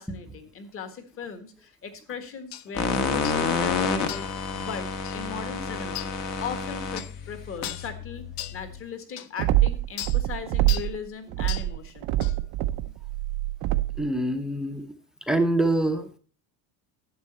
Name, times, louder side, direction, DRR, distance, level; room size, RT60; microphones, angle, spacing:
voice 1, 0.0-4.9 5.1-6.1 6.4-8.2 8.5-12.1, left 6 dB, 30° left, 9 dB, 1.6 m, -38 dB
sound 1, 2.5-2.7 3.2-3.4 4.1-4.4 5.0-5.2 5.9-6.1 7.0-7.1 7.6-7.9 8.4-8.6 9.2-9.3 10.0-10.2 10.7-10.9 11.5-11.7 12.2-12.4, left 14 dB, 65° left, 0.8 m, -36 dB
sound 2, 2.7-8.8, left 5 dB, 45° left, 1.4 m, -29 dB
sound 3, 9.4-11.0 11.3-14.1, right 15 dB, 55° right, 0.7 m, -25 dB
voice 2, 14.0-14.8 15.3-16.2, right 1 dB, ahead, 8 dB, 0.7 m, -25 dB
11.0 x 7.6 x 4.2 m, 0.40 s
cardioid pair, 160°, 42 cm